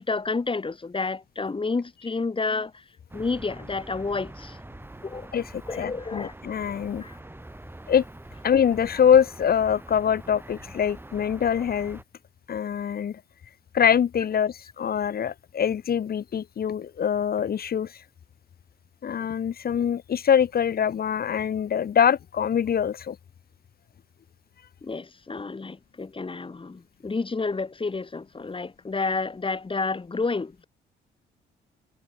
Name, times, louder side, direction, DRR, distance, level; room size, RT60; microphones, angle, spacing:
voice 1, 0.0-2.8 3.1-4.6 5.0-5.3 5.7-6.3 7.0-7.2 24.8-30.7, left 3 dB, 25° left, 5.6 m, -30 dB
sound 1, 3.1-12.0, right 1 dB, 10° right, 6.6 m, -44 dB
voice 2, 5.3-7.0 7.9-8.0 8.4-12.0 12.5-13.2 13.7-18.0 19.0-23.2, left 8 dB, 50° left, 1.4 m, -24 dB
cardioid pair, 90°, 20 cm